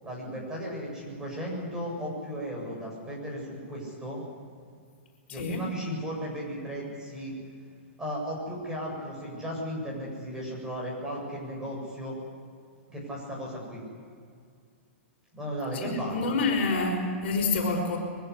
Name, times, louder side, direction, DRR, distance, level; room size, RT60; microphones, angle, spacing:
voice 1, 0.0-4.2 5.3-7.3 8.0-12.2 12.9-13.8 15.3-16.3, equal, 10° right, -2 dB, 8.0 m, -35 dB
voice 2, 5.3-5.6 15.8-18.0, left 3 dB, 55° left, 2 dB, 5.5 m, -27 dB
23.5 x 16.5 x 9.9 m, 2.2 s
hypercardioid pair, 155°, 7 cm